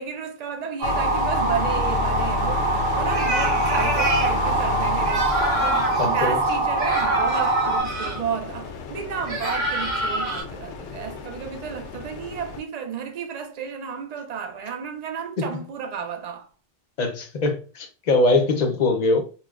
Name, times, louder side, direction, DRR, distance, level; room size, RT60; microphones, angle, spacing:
voice 1, 0.0-2.6 3.0-16.5, right 7 dB, 55° right, 0.4 m, -33 dB
sound 1, 0.8-12.6, left 5 dB, 75° left, 0.8 m, -31 dB
sound 2, 0.8-7.8, right 3 dB, 85° right, 1.5 m, -24 dB
sound 3, 3.1-4.3 5.0-6.1 6.8-8.2 9.3-10.4, right 1 dB, 35° right, 1.6 m, -26 dB
voice 2, 6.0-6.4 15.4-15.5 17.0-19.2, left 2 dB, 45° left, 0.6 m, -22 dB
4.1 x 2.1 x 2.4 m
omnidirectional pair, 1.3 m